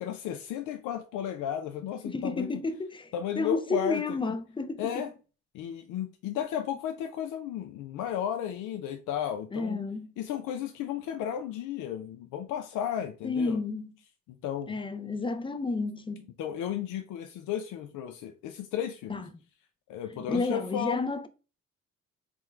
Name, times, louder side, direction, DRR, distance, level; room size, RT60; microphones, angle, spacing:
voice 1, 0.0-2.6 3.1-4.2 4.8-5.1 5.5-9.8 10.2-13.6 14.3-14.8 16.4-19.2 19.9-21.0, left 10 dB, 85° left, 0.5 m, -34 dB
voice 2, 2.1-5.0 9.5-10.1 13.2-13.9 14.7-16.3 19.1-19.3 20.3-21.3, left 3 dB, 15° left, 0.4 m, -31 dB
3.5 x 2.1 x 4.3 m
cardioid pair, 90°, 30 cm